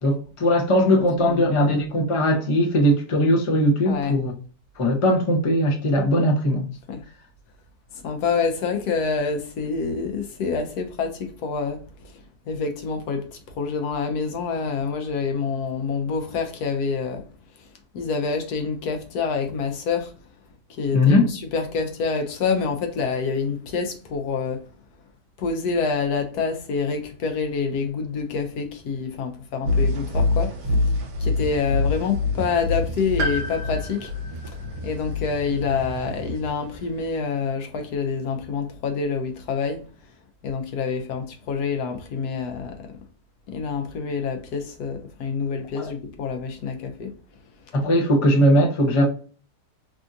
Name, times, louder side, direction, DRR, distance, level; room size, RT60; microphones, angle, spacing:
voice 1, 0.0-4.3 4.8-6.7 20.9-21.3 45.7-45.9 47.7-49.1, equal, 45° left, 0.4 m, -19 dB
voice 2, 0.9-1.6 3.8-4.2 6.9-7.0 7.9-11.8 12.5-17.3 17.9-20.1 20.7-24.6 25.4-30.9 31.2-34.1 34.8-39.8 40.4-43.0 43.5-47.1, left 5 dB, 70° left, 1.1 m, -27 dB
sound 1, 29.7-37.1, left 3 dB, 55° right, 1.2 m, -26 dB
Piano, 33.2-37.1 37.3-37.4 38.6-38.7, right 1 dB, 75° right, 1.2 m, -35 dB
3.4 x 2.4 x 2.6 m
omnidirectional pair, 1.8 m